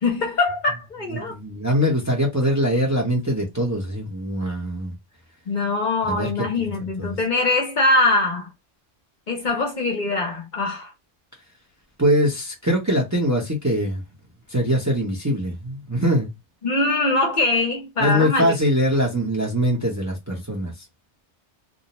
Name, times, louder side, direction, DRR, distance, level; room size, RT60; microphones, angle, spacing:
voice 1, 0.0-1.4 5.5-8.5 9.3-10.9 16.6-18.5, left 2 dB, 50° left, 0.8 m, -22 dB
voice 2, 1.1-4.9 6.1-6.5 7.0-7.1 12.0-14.0 14.5-16.3 18.0-20.7, equal, 20° right, 0.7 m, -22 dB
2.6 x 2.1 x 2.9 m
omnidirectional pair, 1.1 m